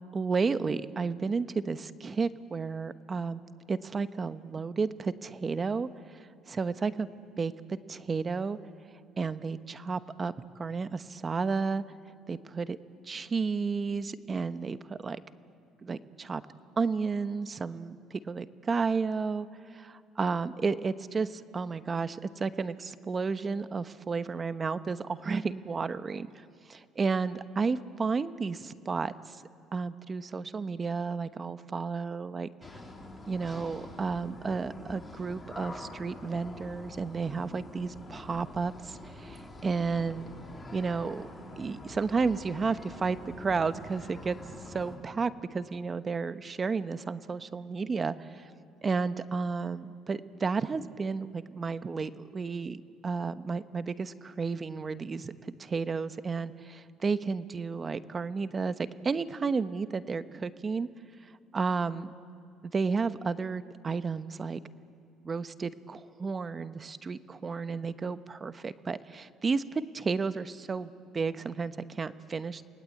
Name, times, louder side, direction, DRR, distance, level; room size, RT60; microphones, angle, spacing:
voice 1, 0.1-3.4 3.7-7.1 7.4-8.6 9.2-11.8 12.3-12.8 13.1-15.2 15.8-16.4 16.8-26.4 26.7-29.4 29.7-32.5 33.3-40.3 40.7-41.3 41.6-44.4 44.7-48.5 48.8-60.9 61.5-62.1 62.7-64.6 65.2-72.6, right 4 dB, 30° right, 12 dB, 1.1 m, -32 dB
sound 1, 32.6-45.0, left 2 dB, 20° left, 4.4 m, -46 dB
29.0 x 20.5 x 8.7 m, 2.6 s
supercardioid pair, 85°, 0 cm